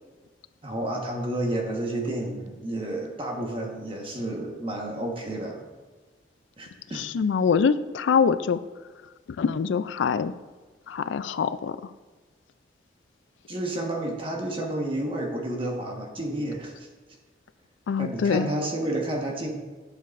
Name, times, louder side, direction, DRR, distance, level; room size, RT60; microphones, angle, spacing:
voice 1, 0.6-5.6 6.6-7.0 13.5-16.9 18.0-19.5, right 1 dB, 30° right, 0 dB, 1.3 m, -30 dB
voice 2, 6.9-8.6 9.4-10.3 10.9-11.9 17.9-18.6, left 6 dB, 85° left, 14 dB, 0.4 m, -24 dB
11.5 x 6.6 x 2.6 m, 1.3 s
head